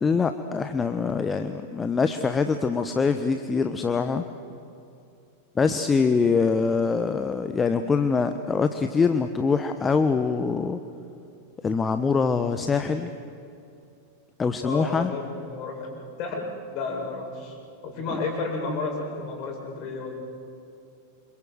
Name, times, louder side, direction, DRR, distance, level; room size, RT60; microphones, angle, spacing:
voice 1, 0.0-4.2 5.5-10.8 11.6-13.1 14.4-15.1 18.1-18.2, left 5 dB, 15° left, 9 dB, 1.1 m, -24 dB
voice 2, 14.6-15.9 16.2-17.5 17.8-20.1, left 3 dB, 40° left, 1 dB, 7.5 m, -32 dB
28.5 x 26.0 x 8.0 m, 2.6 s
figure-of-eight pair, 90°, 0 cm